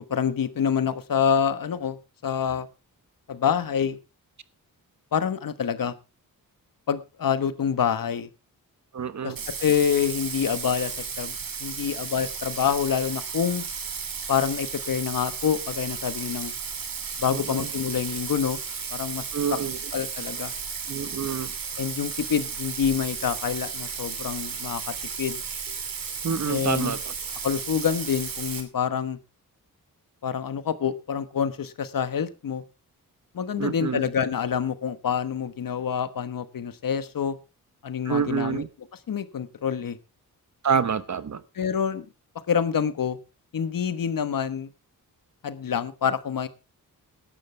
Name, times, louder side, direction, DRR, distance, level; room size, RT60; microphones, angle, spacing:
voice 1, 0.0-2.7 3.3-4.0 5.1-5.9 6.9-8.3 9.2-11.3 11.6-13.6 14.3-16.5 17.2-18.6 18.9-19.6 19.9-20.5 21.8-25.4 26.4-26.9 27.4-29.2 30.2-32.6 33.3-37.4 37.8-38.6 39.1-40.0 41.5-42.1 42.5-43.2 43.5-44.7 45.4-46.5, left 7 dB, 70° left, 13 dB, 1.3 m, -27 dB
voice 2, 8.9-9.4 17.3-17.7 19.3-19.8 20.9-21.5 26.2-27.1 33.6-34.0 38.0-38.7 40.6-41.4, right 6 dB, 50° right, 14 dB, 1.2 m, -27 dB
Bathtub (filling or washing), 9.4-28.6, right 6 dB, 70° right, 3.0 m, -34 dB
17.0 x 11.5 x 3.3 m, 0.29 s
wide cardioid pair, 95°, 36 cm